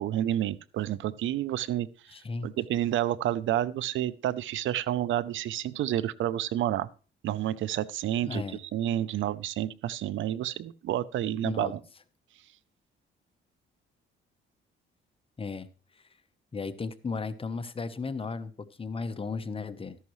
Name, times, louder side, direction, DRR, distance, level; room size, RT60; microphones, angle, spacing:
voice 1, 0.0-1.9 2.4-6.9 7.2-11.8, right 12 dB, 75° right, 19 dB, 0.6 m, -29 dB
voice 2, 2.1-2.5 8.2-8.6 11.4-11.7 15.4-15.7 16.5-20.0, left 4 dB, 25° left, 12 dB, 1.0 m, -35 dB
13.5 x 11.0 x 3.2 m, 0.36 s
cardioid pair, 90°, 20 cm